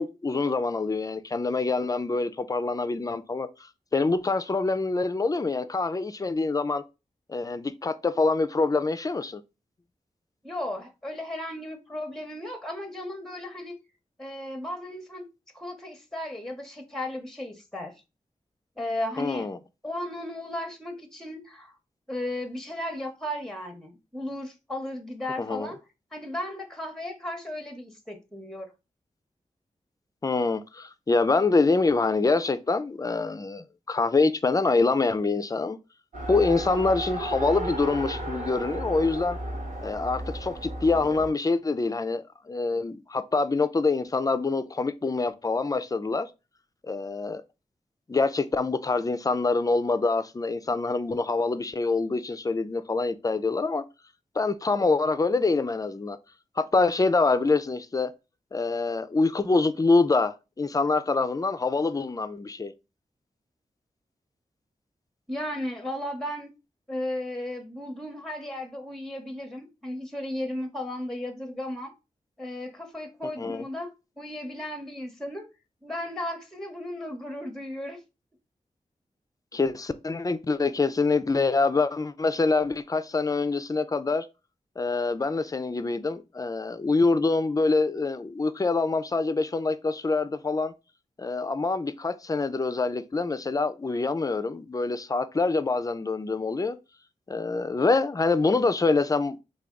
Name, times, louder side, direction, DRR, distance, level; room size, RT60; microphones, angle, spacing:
voice 1, 0.0-6.8 7.3-9.4 19.2-19.6 25.4-25.7 30.2-35.8 36.3-39.4 39.8-46.3 46.8-47.4 48.1-53.8 54.4-56.2 56.6-58.1 58.5-62.7 73.4-73.6 79.5-84.3 84.8-90.7 91.2-96.8 97.3-99.4, left 3 dB, 25° left, 0.4 m, -25 dB
voice 2, 10.4-13.8 14.2-15.2 15.5-18.0 18.8-19.5 19.8-21.8 22.1-25.8 26.1-28.7 65.3-66.5 66.9-71.9 72.4-73.9 74.2-75.5 75.8-78.0, left 1 dB, 5° left, 0.7 m, -35 dB
Race car auto racing, 36.1-41.3, right 1 dB, 75° right, 1.3 m, -34 dB
3.3 x 2.3 x 3.6 m
cardioid pair, 55°, 14 cm